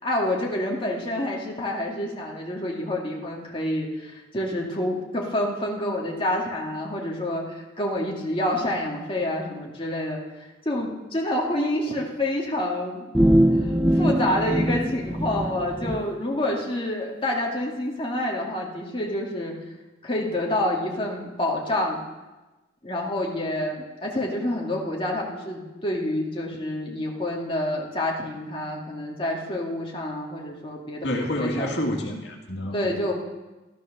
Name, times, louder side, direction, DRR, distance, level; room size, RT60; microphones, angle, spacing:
voice 1, 0.0-10.2 10.7-13.1 13.9-19.5 20.0-22.0 22.8-31.1 31.3-31.8 32.7-33.1, left 1 dB, 30° left, -2 dB, 2.3 m, -28 dB
sound 1, 13.1-16.0, equal, 5° right, 0.7 m, -22 dB
voice 2, 31.0-33.0, left 1 dB, 65° left, 1 dB, 2.3 m, -28 dB
13.5 x 13.0 x 6.6 m, 1.1 s
head